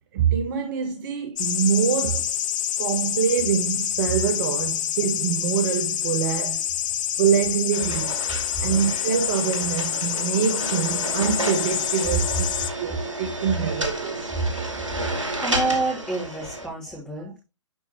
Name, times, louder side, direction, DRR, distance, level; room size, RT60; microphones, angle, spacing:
voice 1, 0.1-2.3 2.8-6.6 7.2-8.1 8.6-12.5 12.8-14.3, right 8 dB, 40° right, 1.1 m, -25 dB
sound 1, 1.4-12.7, left 11 dB, 40° left, 0.6 m, -27 dB
sound 2, 7.7-16.7, right 2 dB, 85° right, 2.4 m, -31 dB
voice 2, 15.4-17.4, right 2 dB, 5° left, 2.9 m, -28 dB
11.0 x 4.5 x 3.0 m
figure-of-eight pair, 125°, 16 cm